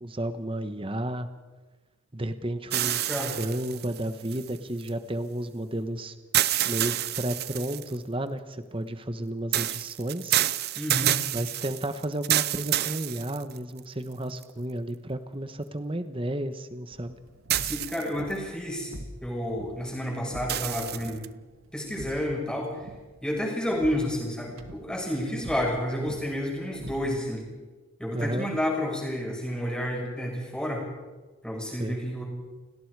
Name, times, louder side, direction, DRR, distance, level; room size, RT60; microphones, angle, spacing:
voice 1, 0.0-1.3 2.1-3.0 3.3-6.1 6.6-10.4 11.3-17.2 28.1-28.5 31.7-32.0, right 1 dB, 25° right, 10 dB, 1.2 m, -32 dB
sound 1, 2.7-4.9 6.3-8.0 9.5-13.8 14.4-14.5 17.5-18.3 20.5-21.3, right 13 dB, 50° right, 0.6 m, -28 dB
voice 2, 10.7-11.1 17.6-18.9 19.2-21.2 21.7-22.9 23.2-27.4 28.0-30.9 31.4-32.2, equal, 5° left, -2 dB, 6.3 m, -30 dB
sound 2, 16.9-27.5, right 1 dB, 90° right, 1.9 m, -46 dB
29.5 x 18.5 x 4.9 m, 1.2 s
head